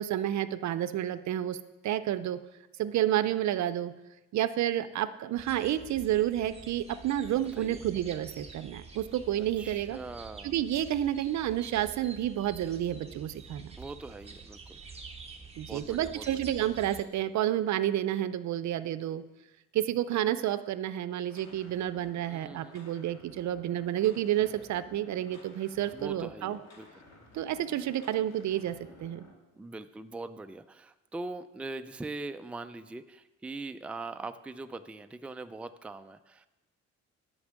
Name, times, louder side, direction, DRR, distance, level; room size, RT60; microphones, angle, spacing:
voice 1, 0.0-1.6 1.8-2.4 2.8-3.9 4.3-10.0 10.4-13.7 15.6-19.2 19.7-26.6 27.3-29.3, right 12 dB, 65° right, 13 dB, 0.6 m, -30 dB
sound 1, 5.4-17.0, right 4 dB, 20° right, 1.3 m, -48 dB
voice 2, 7.3-7.8 9.4-10.5 13.8-14.8 15.7-16.5 22.3-22.7 25.9-26.9 29.6-36.5, right 3 dB, 5° right, 9 dB, 0.4 m, -42 dB
sound 2, 21.1-29.3, left 2 dB, 60° left, 2.3 m, -54 dB
9.8 x 5.3 x 7.3 m, 1.0 s
cardioid pair, 90°, 30 cm